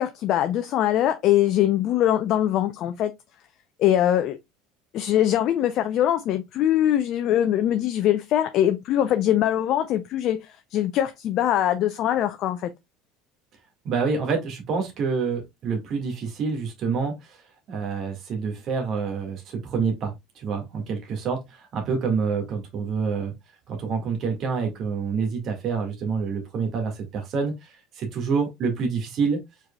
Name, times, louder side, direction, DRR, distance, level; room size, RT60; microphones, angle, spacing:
voice 1, 0.0-3.1 3.8-4.4 4.9-12.7, left 11 dB, 55° left, 0.6 m, -22 dB
voice 2, 13.8-17.4 17.7-23.3 23.7-29.4, right 5 dB, 50° right, 1.9 m, -27 dB
4.7 x 4.7 x 2.3 m
hypercardioid pair, 70°, 0 cm